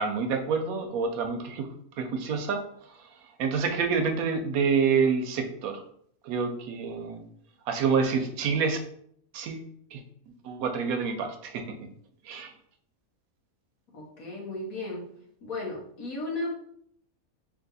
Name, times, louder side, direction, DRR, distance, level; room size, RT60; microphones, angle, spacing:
voice 1, 0.0-1.7 2.0-2.6 3.4-5.8 6.2-7.2 7.7-8.8 9.3-9.6 9.9-10.0 10.4-11.8 12.3-12.5, right 5 dB, 80° right, 6 dB, 1.1 m, -27 dB
voice 2, 13.9-15.0 15.4-16.5, left 2 dB, 75° left, -2 dB, 1.6 m, -34 dB
3.4 x 2.9 x 3.9 m, 0.66 s
omnidirectional pair, 1.5 m